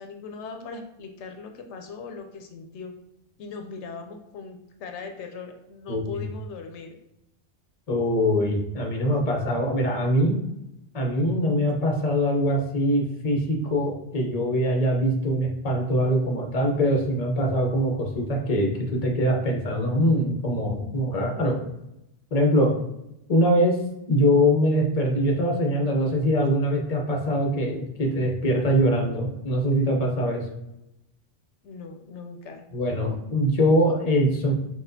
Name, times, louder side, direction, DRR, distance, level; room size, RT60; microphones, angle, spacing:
voice 1, 0.0-2.9 3.4-7.0 31.6-32.7, left 5 dB, 85° left, 4 dB, 0.9 m, -39 dB
voice 2, 5.9-6.2 7.9-10.4 10.9-21.6 22.3-22.7 23.3-23.8 24.1-30.4 32.7-34.5, equal, 40° left, 1 dB, 0.8 m, -23 dB
5.9 x 2.3 x 2.7 m, 0.88 s
omnidirectional pair, 1.1 m